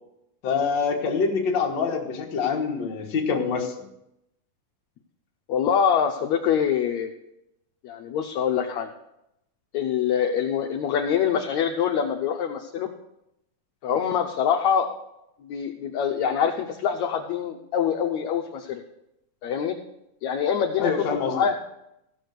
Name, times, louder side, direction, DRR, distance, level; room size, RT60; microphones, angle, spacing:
voice 1, 0.4-3.7 20.8-21.3, left 5 dB, 45° left, 1 dB, 1.6 m, -25 dB
voice 2, 5.5-7.1 7.8-8.9 9.7-12.9 13.8-14.9 15.4-18.8 19.4-19.8 20.2-21.6, left 8 dB, 75° left, 2 dB, 1.8 m, -25 dB
15.5 x 6.2 x 6.6 m, 0.84 s
omnidirectional pair, 4.0 m